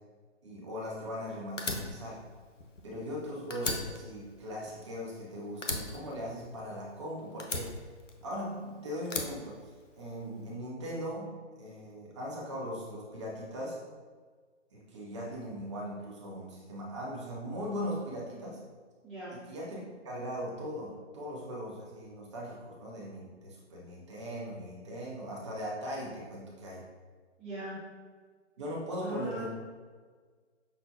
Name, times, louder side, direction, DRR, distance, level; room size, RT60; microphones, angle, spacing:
voice 1, 0.4-2.2 2.8-7.8 8.2-11.3 11.6-13.8 14.7-18.6 19.3-26.8 28.6-29.5, equal, 25° right, -4 dB, 0.7 m, -39 dB
Fire, 1.6-3.2 3.5-5.2 5.6-6.9 7.4-8.5 9.0-10.2, left 3 dB, 85° left, 0.6 m, -37 dB
voice 2, 27.4-27.8 29.0-29.5, right 2 dB, ahead, -15 dB, 0.3 m, -39 dB
5.7 x 2.1 x 2.7 m, 1.5 s
figure-of-eight pair, 140°, 36 cm